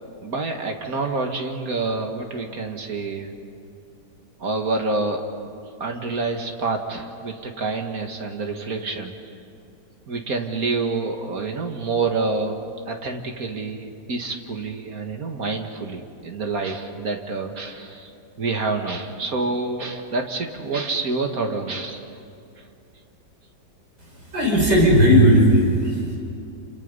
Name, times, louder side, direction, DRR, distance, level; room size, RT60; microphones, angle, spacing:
voice 1, 0.2-3.3 4.4-5.2 5.8-9.2 10.1-12.6 12.9-18.1 18.4-22.0, right 3 dB, 55° right, 4 dB, 2.1 m, -27 dB
voice 2, 24.1-26.0, equal, 85° right, -2 dB, 6.3 m, -16 dB
30.0 x 27.0 x 5.4 m, 2.6 s
omnidirectional pair, 1.9 m